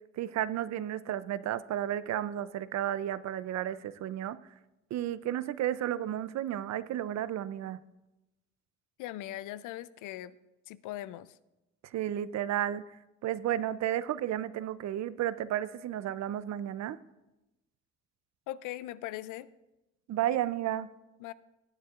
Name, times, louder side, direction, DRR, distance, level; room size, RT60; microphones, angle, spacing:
voice 1, 0.2-4.4 4.9-7.8 11.9-12.8 13.2-17.0 20.1-20.9, right 11 dB, 65° right, 16 dB, 0.5 m, -32 dB
voice 2, 9.0-10.4 10.7-11.4 18.5-19.5 21.2-21.3, left 14 dB, 90° left, 17 dB, 0.5 m, -40 dB
17.5 x 9.4 x 2.5 m, 0.98 s
cardioid pair, 90°, 30 cm